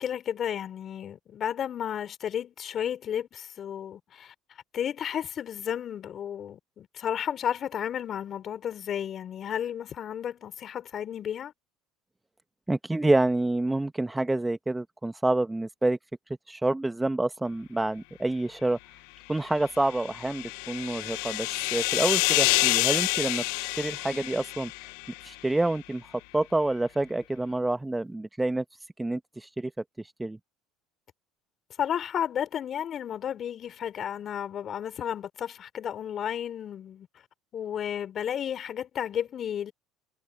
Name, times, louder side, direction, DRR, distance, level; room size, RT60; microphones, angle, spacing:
voice 1, 0.0-4.3 4.7-11.5 31.8-37.1 37.5-39.7, left 9 dB, 45° left, 3.6 m, -32 dB
voice 2, 12.7-16.0 16.5-18.8 19.3-24.7 25.2-28.6 29.0-29.7 30.0-30.4, right 2 dB, 10° right, 1.1 m, -28 dB
sound 1, 19.7-25.2, left 27 dB, 70° left, 0.5 m, -28 dB
hypercardioid pair, 70°, 0 cm